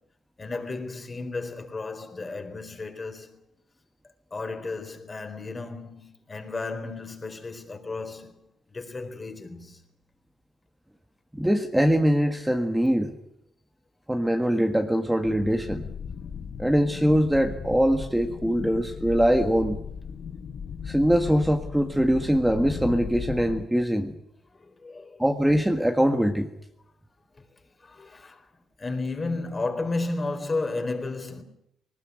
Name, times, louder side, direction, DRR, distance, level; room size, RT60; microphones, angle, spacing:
voice 1, 0.4-3.3 4.3-8.4 8.7-9.8 24.5-25.2 27.3-27.5 27.8-28.5 28.8-31.4, left 3 dB, 30° left, 4.2 m, -33 dB
voice 2, 11.3-13.1 14.1-15.9 16.6-19.8 20.8-24.1 25.2-26.5, equal, 5° right, 1.7 m, -23 dB
sound 1, 15.2-23.7, left 6 dB, 55° left, 1.4 m, -37 dB
20.0 x 19.5 x 9.6 m
cardioid pair, 90°, 0 cm